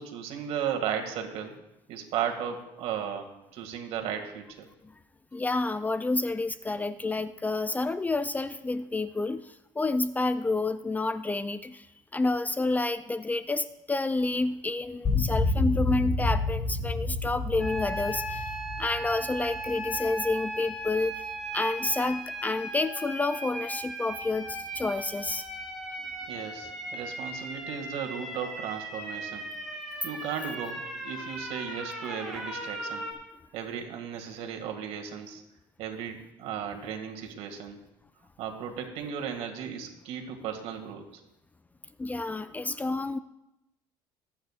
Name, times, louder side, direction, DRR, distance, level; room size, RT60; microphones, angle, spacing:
voice 1, 0.0-1.5 1.9-4.7 26.3-29.5 30.0-33.0 33.5-35.4 35.8-37.8 38.4-41.0, right 8 dB, 70° right, 4 dB, 2.1 m, -35 dB
voice 2, 5.3-11.9 12.1-18.5 18.8-21.1 21.5-25.4 42.0-43.2, left 2 dB, 15° left, 12 dB, 0.4 m, -29 dB
sound 1, 15.0-20.4, left 3 dB, 40° left, 2.6 m, -29 dB
sound 2, 17.6-33.1, right 1 dB, ahead, 4.1 m, -37 dB
24.0 x 9.2 x 2.5 m, 0.89 s
cardioid pair, 105°, 11 cm